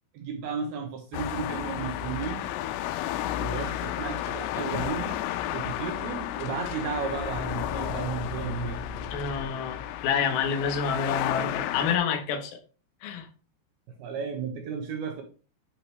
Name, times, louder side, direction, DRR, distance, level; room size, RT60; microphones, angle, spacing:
voice 1, 0.1-2.5 3.3-5.2 5.5-8.8 14.0-15.2, right 6 dB, 80° right, 2.2 m, -34 dB
sound 1, 1.1-12.0, left 13 dB, 85° left, 3.1 m, -32 dB
sound 2, 7.1-10.0, left 2 dB, 20° left, 1.9 m, -39 dB
voice 2, 9.1-12.6 13.0-13.3, left 6 dB, 70° left, 2.4 m, -28 dB
10.5 x 4.9 x 3.2 m
omnidirectional pair, 5.7 m